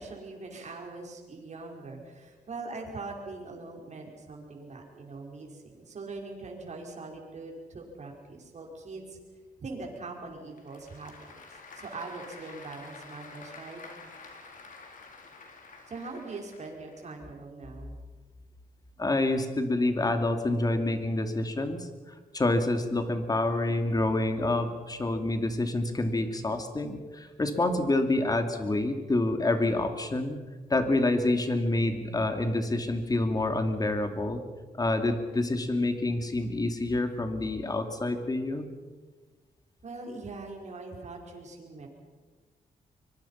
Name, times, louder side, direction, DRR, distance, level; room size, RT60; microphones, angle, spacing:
voice 1, 0.0-9.2 9.6-13.8 15.9-18.0 39.8-41.9, right 3 dB, 50° right, 1 dB, 5.6 m, -42 dB
Applause / Crowd, 10.3-17.0, left 4 dB, 60° left, 4.4 m, -49 dB
voice 2, 19.0-21.9 22.3-30.4 30.7-34.4 34.7-38.7, left 2 dB, 25° left, 6 dB, 2.8 m, -27 dB
24.5 x 23.5 x 5.9 m, 1.3 s
cardioid pair, 115°, 15 cm